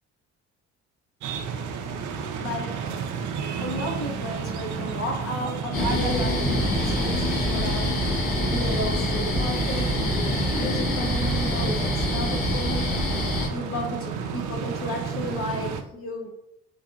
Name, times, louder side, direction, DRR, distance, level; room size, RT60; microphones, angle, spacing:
sound 1, 1.2-15.8, right 6 dB, 75° right, 0.5 m, -32 dB
voice 1, 2.2-2.7 3.6-7.9 8.5-13.0 13.5-16.3, left 1 dB, 45° left, 0 dB, 1.0 m, -33 dB
sound 2, 5.7-13.5, left 1 dB, 80° left, 1.3 m, -25 dB
3.2 x 2.8 x 2.4 m, 0.79 s
cardioid pair, 90°, 30 cm